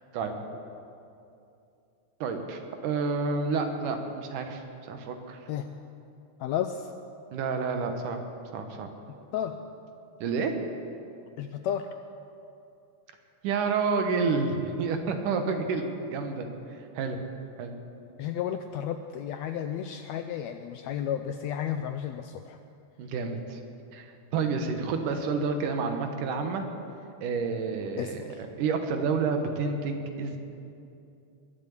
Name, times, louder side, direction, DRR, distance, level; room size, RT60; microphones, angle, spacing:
voice 1, 2.2-5.4 7.3-8.2 8.5-8.9 10.2-10.6 13.4-15.8 16.1-16.5 17.0-17.2 17.6-17.7 23.0-23.6 23.9-24.1 24.3-26.7 27.2-28.2 28.6-30.4, right 4 dB, 85° right, 5 dB, 2.8 m, -29 dB
voice 2, 6.4-6.9 9.3-9.6 11.4-11.9 18.2-22.6 28.0-28.4, left 9 dB, 80° left, 8 dB, 1.6 m, -32 dB
21.5 x 7.6 x 8.5 m, 2.6 s
omnidirectional pair, 3.6 m